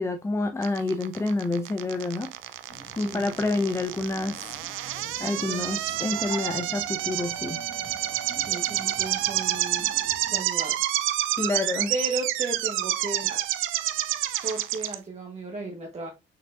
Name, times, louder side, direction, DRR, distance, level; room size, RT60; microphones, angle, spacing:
voice 1, 0.0-2.3 3.0-4.4 5.2-7.6 11.4-11.9, left 2 dB, 15° left, 0.5 m, -28 dB
sound 1, 0.6-14.9, right 14 dB, 90° right, 0.5 m, -29 dB
sound 2, 2.7-10.4, left 2 dB, 40° left, 1.7 m, -45 dB
voice 2, 3.0-3.4 5.3-6.0 8.4-9.9 10.2-10.9 11.9-13.4 14.4-16.1, right 2 dB, 35° right, 1.1 m, -35 dB
5.7 x 3.7 x 2.4 m
cardioid pair, 90°, 20 cm